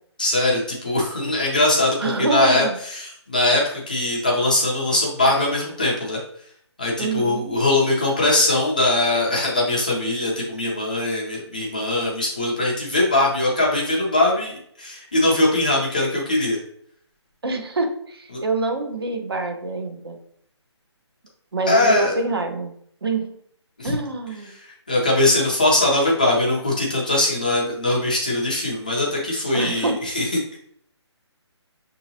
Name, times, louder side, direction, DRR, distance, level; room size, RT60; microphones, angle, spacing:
voice 1, 0.2-6.2 6.8-16.6 18.3-18.4 21.7-22.1 23.8-23.9 24.5-30.6, left 2 dB, 15° left, -3 dB, 0.5 m, -21 dB
voice 2, 2.0-2.8 7.0-7.5 17.4-20.2 21.5-22.7 23.0-23.3 23.8-24.5 29.5-30.0, right 3 dB, 55° right, 6 dB, 0.8 m, -26 dB
6.0 x 2.8 x 2.7 m, 0.66 s
hypercardioid pair, 180°, 15 cm